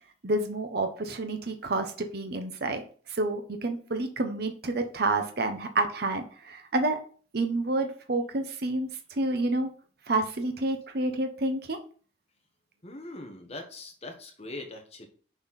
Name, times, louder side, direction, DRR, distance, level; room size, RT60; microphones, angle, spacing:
voice 1, 0.2-2.8 3.1-7.0 7.3-9.7 10.1-11.8, right 2 dB, 55° right, 6 dB, 0.8 m, -29 dB
voice 2, 12.8-15.1, left 2 dB, 35° left, 3 dB, 1.2 m, -41 dB
6.9 x 4.3 x 4.1 m, 0.43 s
head